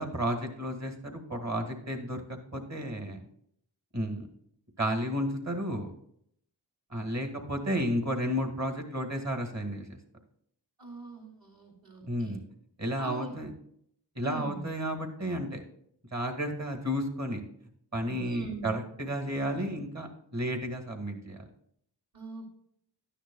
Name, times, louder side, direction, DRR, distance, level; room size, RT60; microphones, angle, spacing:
voice 1, 0.0-3.2 3.9-4.3 4.8-5.9 6.9-10.0 12.1-12.4 12.8-13.5 14.2-15.6 16.1-17.4 17.9-21.5, equal, 40° right, 4 dB, 2.0 m, -32 dB
voice 2, 10.8-12.4 13.0-13.3 14.2-14.6 18.2-18.7 22.1-22.5, right 2 dB, 60° right, -8 dB, 3.5 m, -41 dB
12.5 x 10.0 x 2.4 m, 0.68 s
wide cardioid pair, 90°, 43 cm